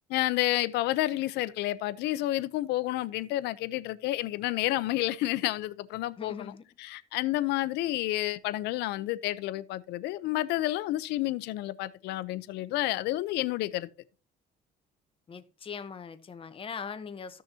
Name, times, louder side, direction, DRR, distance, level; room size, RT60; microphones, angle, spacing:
voice 1, 0.1-6.5 6.8-13.9, left 16 dB, 90° left, 0.6 m, -30 dB
voice 2, 6.2-6.6 15.3-17.4, left 6 dB, 35° left, 1.0 m, -40 dB
14.0 x 6.4 x 2.8 m
cardioid pair, 110°, 17 cm